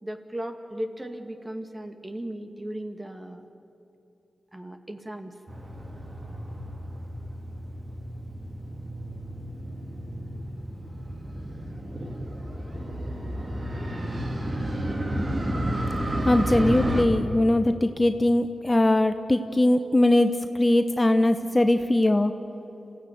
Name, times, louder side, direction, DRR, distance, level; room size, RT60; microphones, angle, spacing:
voice 1, 0.0-3.4 4.5-5.3, right 1 dB, 20° right, 6 dB, 2.0 m, -36 dB
Motorcycle, 5.5-17.0, right 1 dB, 40° right, 3.3 m, -32 dB
voice 2, 16.2-20.3 20.5-22.3, left 1 dB, 20° left, 8 dB, 1.0 m, -21 dB
26.0 x 16.0 x 9.4 m, 3.0 s
cardioid pair, 55°, 0 cm